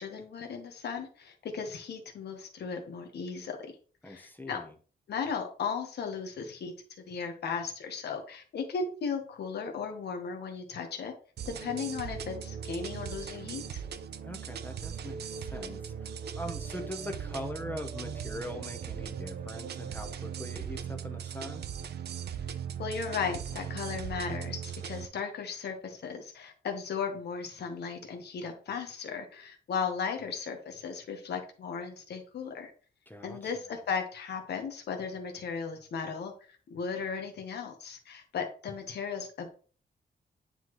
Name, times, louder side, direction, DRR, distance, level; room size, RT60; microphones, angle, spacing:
voice 1, 0.0-3.7 4.0-4.6 5.1-6.7 7.1-11.1 11.4-13.8 22.8-32.7 33.2-39.5, left 5 dB, 90° left, 4 dB, 1.1 m, -36 dB
voice 2, 4.0-4.7 14.2-16.1 16.3-21.7 33.1-33.5, left 1 dB, 10° left, 5 dB, 0.9 m, -42 dB
sound 1, 11.4-25.1, right 7 dB, 80° right, 0.6 m, -39 dB
9.4 x 4.1 x 3.1 m, 0.40 s
wide cardioid pair, 120°, 17 cm